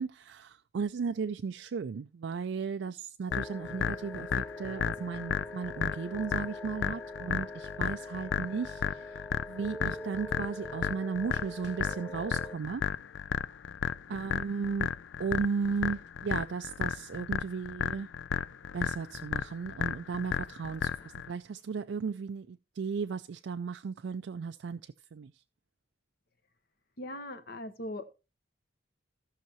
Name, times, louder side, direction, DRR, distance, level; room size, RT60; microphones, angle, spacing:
voice 1, 0.0-4.3 4.6-9.2 9.5-12.8 14.1-14.9 15.2-18.1 18.7-25.3, right 5 dB, 70° right, 0.4 m, -35 dB
sound 1, 3.3-21.3, left 7 dB, 75° left, 0.4 m, -34 dB
sound 2, 3.3-12.6, left 1 dB, 15° left, 0.5 m, -44 dB
voice 2, 27.0-28.1, left 1 dB, 55° left, 1.2 m, -40 dB
16.5 x 5.7 x 3.0 m
head